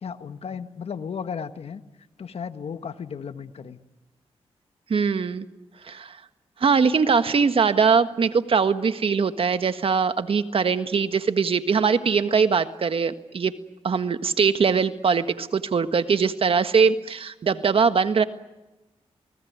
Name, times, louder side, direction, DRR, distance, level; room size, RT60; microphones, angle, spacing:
voice 1, 0.0-1.8 2.2-3.8, left 6 dB, 70° left, 10 dB, 1.5 m, -34 dB
voice 2, 4.9-5.5 5.8-6.2 6.6-13.5 13.8-18.2, right 5 dB, 60° right, 10 dB, 1.6 m, -21 dB
29.0 x 19.5 x 9.6 m, 1.0 s
cardioid pair, 70°, 11 cm